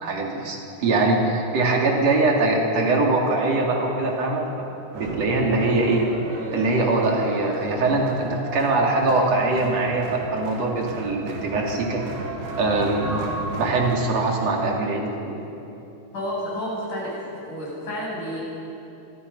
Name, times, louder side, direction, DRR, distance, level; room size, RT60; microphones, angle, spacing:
voice 1, 0.0-4.6 4.9-6.1 6.5-12.0 12.6-13.2 13.5-15.4, right 2 dB, 50° right, -1 dB, 4.3 m, -22 dB
sound 1, 4.9-14.0, right 2 dB, 75° right, 3.7 m, -35 dB
voice 2, 13.0-13.4 16.1-17.1 17.4-18.4, equal, 70° left, -5 dB, 9.6 m, -30 dB
25.5 x 25.0 x 5.7 m, 2.9 s
omnidirectional pair, 3.7 m